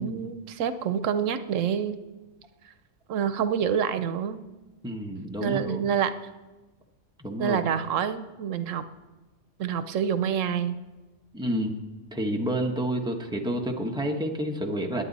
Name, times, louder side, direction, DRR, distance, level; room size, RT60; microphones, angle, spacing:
voice 1, 0.0-1.9 3.1-4.4 5.4-6.1 7.4-8.9 9.6-10.8, right 8 dB, 80° right, 11 dB, 1.0 m, -27 dB
voice 2, 4.8-5.8 7.2-7.6 11.3-11.8 12.1-15.0, right 1 dB, 5° right, 1 dB, 1.1 m, -29 dB
20.5 x 8.9 x 4.1 m, 1.1 s
omnidirectional pair, 1.3 m